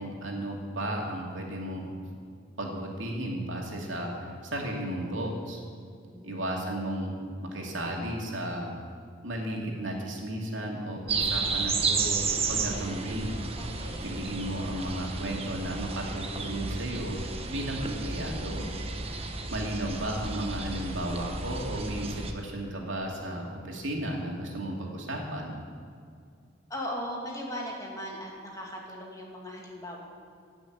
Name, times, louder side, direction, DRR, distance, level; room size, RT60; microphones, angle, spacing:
voice 1, 0.0-1.9 2.6-5.6 6.2-7.1 7.4-8.7 9.2-13.4 14.0-18.7 19.3-25.5, right 1 dB, 90° right, -1 dB, 2.5 m, -34 dB
voice 2, 6.1-6.4 13.6-14.2 26.7-30.0, equal, 20° left, -2 dB, 2.2 m, -38 dB
sound 1, 11.1-22.3, right 4 dB, 30° right, 1.0 m, -32 dB
15.5 x 6.3 x 9.2 m, 2.2 s
head